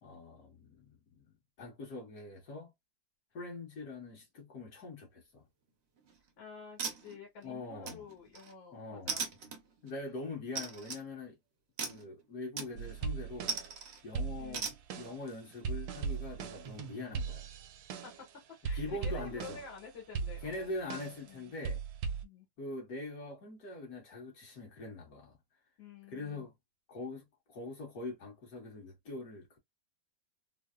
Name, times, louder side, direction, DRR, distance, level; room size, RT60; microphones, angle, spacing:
voice 1, 0.0-1.3 1.6-2.7 3.3-5.5 7.4-8.0 8.7-9.2 9.8-11.4 11.8-13.5 14.0-14.6 15.0-17.5 18.7-19.6 20.4-21.8 22.6-25.4 26.1-26.6 26.9-29.6, left 2 dB, 50° left, 1.7 m, -43 dB
sound 1, 6.0-6.3 6.8-7.4 7.9-8.5 9.1-9.9 10.6-11.0 11.8-12.1 12.6-13.0 13.5-14.0 14.5-14.8, right 5 dB, 60° right, 0.7 m, -38 dB
voice 2, 6.4-9.3 14.4-14.7 18.0-20.7 21.2-21.5 22.2-22.5 25.8-26.4, left 5 dB, 80° left, 2.0 m, -50 dB
sound 2, 12.8-13.8 14.1-18.3 18.6-19.8 20.1-21.3 21.6-22.2, right 5 dB, 80° right, 1.2 m, -39 dB
4.0 x 2.0 x 2.3 m
omnidirectional pair, 2.1 m